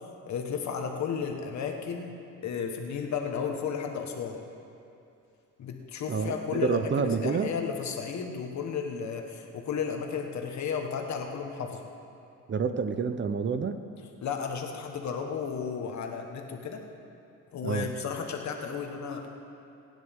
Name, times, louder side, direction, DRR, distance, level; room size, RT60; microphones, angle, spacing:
voice 1, 0.3-4.4 5.6-11.8 14.2-16.8 17.5-19.3, left 6 dB, 65° left, 3 dB, 1.5 m, -33 dB
voice 2, 6.1-7.5 12.5-13.8 17.6-17.9, right 5 dB, 40° right, 10 dB, 0.8 m, -28 dB
23.0 x 9.9 x 3.7 m, 2.7 s
cardioid pair, 90°, 30 cm